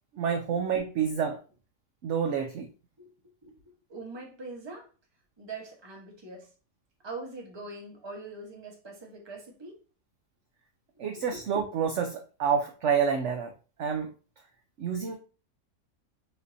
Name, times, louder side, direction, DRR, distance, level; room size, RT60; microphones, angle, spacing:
voice 1, 0.2-1.4 2.0-2.7 11.0-13.5 13.8-14.1 14.8-15.1, right 7 dB, 70° right, 4 dB, 0.7 m, -28 dB
voice 2, 3.9-4.9 5.4-6.5 7.0-9.8 11.1-11.4, right 3 dB, 20° right, 0 dB, 0.8 m, -42 dB
6.2 x 2.6 x 2.6 m, 0.35 s
omnidirectional pair, 1.8 m